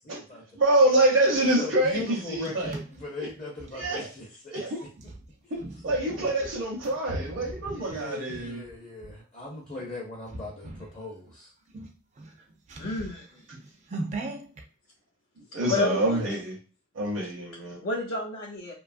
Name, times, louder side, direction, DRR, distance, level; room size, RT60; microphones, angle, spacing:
voice 1, 0.0-0.4 1.4-4.9 7.7-11.5, left 2 dB, 30° left, -3 dB, 0.5 m, -39 dB
voice 2, 0.6-2.8 3.7-4.1 4.5-4.8 5.5-8.6 15.5-16.6 16.9-17.8, right 1 dB, 70° right, -4 dB, 0.6 m, -25 dB
sound 1, 2.0-4.0 4.9-9.2 9.7-9.9 10.3-10.9 11.3-11.4 11.7-14.6, right 2 dB, 35° right, 0.3 m, -40 dB
voice 3, 12.8-13.4 15.7-16.3 17.8-18.7, left 3 dB, 90° left, -3 dB, 0.6 m, -30 dB
2.8 x 2.3 x 2.4 m, 0.36 s
head